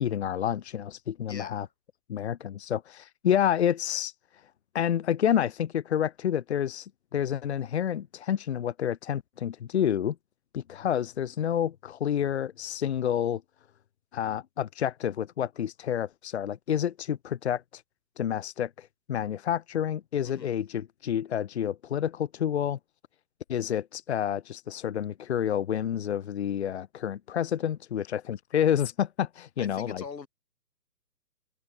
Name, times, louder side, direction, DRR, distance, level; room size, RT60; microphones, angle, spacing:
voice 1, 0.0-1.7 2.1-4.1 4.7-10.1 10.5-13.4 14.1-17.8 18.2-22.8 23.5-30.0, left 9 dB, 40° left, 1.7 m, -29 dB
voice 2, 1.3-1.7 20.2-20.5 29.6-30.3, left 5 dB, 85° left, 3.7 m, -42 dB
hypercardioid pair, 160°, 49 cm